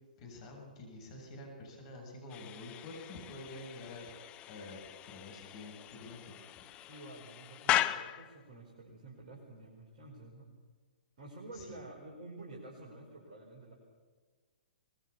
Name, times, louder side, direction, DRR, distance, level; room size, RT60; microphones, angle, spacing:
voice 1, 0.2-4.1 4.5-6.7 11.5-11.7, left 2 dB, 40° left, 1 dB, 7.3 m, -48 dB
sound 1, 2.3-8.4, left 13 dB, 25° left, 0.9 m, -38 dB
voice 2, 6.9-10.5 11.2-13.7, right 2 dB, 45° right, -2 dB, 5.1 m, -50 dB
24.5 x 21.0 x 7.1 m, 1.4 s
figure-of-eight pair, 115°, 5 cm